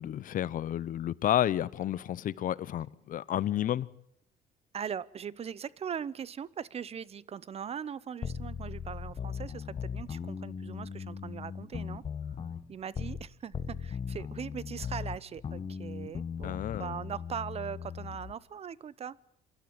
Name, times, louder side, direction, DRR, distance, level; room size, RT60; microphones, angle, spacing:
voice 1, 0.0-3.9 16.4-17.0, left 11 dB, 55° left, 0.7 m, -31 dB
voice 2, 4.7-12.0 12.7-19.2, right 8 dB, 35° right, 0.8 m, -40 dB
sound 1, 8.2-13.3 13.5-18.3, left 6 dB, 35° left, 1.1 m, -38 dB
27.0 x 12.5 x 8.7 m
cardioid pair, 110°, 17 cm